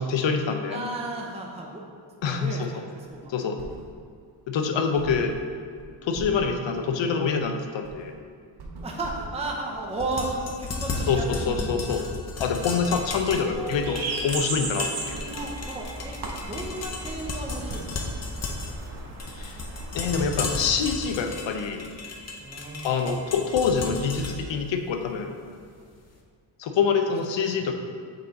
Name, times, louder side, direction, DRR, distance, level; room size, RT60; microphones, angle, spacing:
voice 1, 0.0-0.9 2.2-2.8 3.3-3.6 4.5-5.4 6.0-8.1 11.1-12.0 12.4-14.0 14.2-15.2 19.4-19.6 19.9-21.9 22.8-25.3 26.6-27.7, left 5 dB, 70° left, 5 dB, 0.7 m, -26 dB
voice 2, 0.7-1.8 2.3-3.3 8.8-11.7 12.9-13.1 13.5-14.0 15.2-18.0 18.4-18.5 22.4-23.3 27.5-27.6, right 2 dB, 15° right, -1 dB, 0.6 m, -34 dB
sound 1, 3.0-4.2 4.5-4.6 5.0-13.6 13.9-14.7 15.0-17.0 17.4-17.5 17.7-21.8, right 2 dB, 55° right, 0.8 m, -42 dB
sound 2, 9.9-26.0, left 3 dB, 35° left, 0.7 m, -35 dB
sound 3, 12.9-20.3, right 2 dB, 85° right, 1.3 m, -36 dB
6.7 x 3.7 x 4.0 m, 2.1 s
wide cardioid pair, 120°, 46 cm